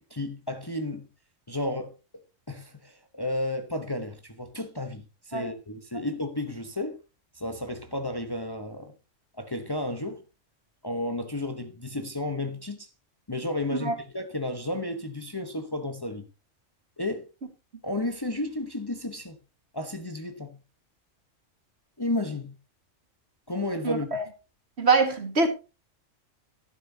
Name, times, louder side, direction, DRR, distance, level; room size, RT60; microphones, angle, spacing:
voice 1, 0.1-1.1 1.5-2.2 2.5-7.0 7.3-8.9 9.4-10.2 10.8-12.9 13.3-16.3 17.0-17.3 17.8-19.4 19.7-20.6 22.0-22.6 23.5-24.1, left 1 dB, 20° left, 1.0 m, -32 dB
voice 2, 23.8-24.2 24.8-25.5, right 4 dB, 55° right, 2.1 m, -24 dB
12.5 x 11.0 x 2.8 m
omnidirectional pair, 1.3 m